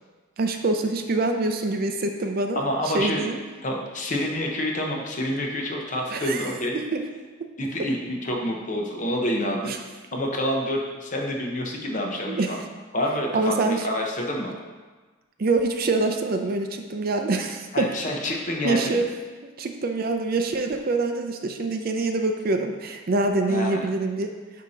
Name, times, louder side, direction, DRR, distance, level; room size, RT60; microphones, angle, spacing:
voice 1, 0.4-2.6 2.9-3.4 6.1-6.5 6.7-7.0 9.6-9.8 12.3-12.5 13.3-13.8 15.4-17.9 18.6-19.1 19.4-24.3, right 3 dB, 45° right, 5 dB, 0.5 m, -25 dB
voice 2, 2.5-3.3 3.6-6.8 7.6-9.8 10.1-12.6 12.9-14.5 17.7-19.0 23.5-23.8, left 1 dB, 40° left, 0 dB, 0.9 m, -27 dB
8.2 x 2.9 x 5.0 m, 1.3 s
head